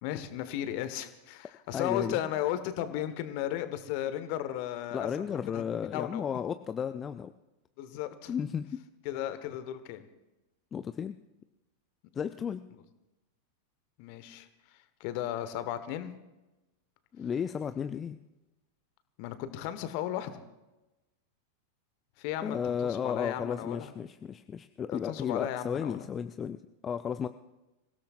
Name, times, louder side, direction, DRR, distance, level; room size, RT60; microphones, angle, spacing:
voice 1, 0.0-6.2 7.8-8.3 9.0-10.0 14.0-14.5 15.0-16.1 19.2-20.4 22.2-23.9 24.9-26.1, left 11 dB, 45° left, 11 dB, 1.3 m, -35 dB
voice 2, 1.7-2.2 4.9-7.3 8.3-8.8 10.7-11.2 12.1-12.6 17.1-18.2 22.4-27.3, left 7 dB, 25° left, 10 dB, 0.5 m, -34 dB
26.0 x 17.0 x 2.5 m, 1.0 s
figure-of-eight pair, 90°, 0 cm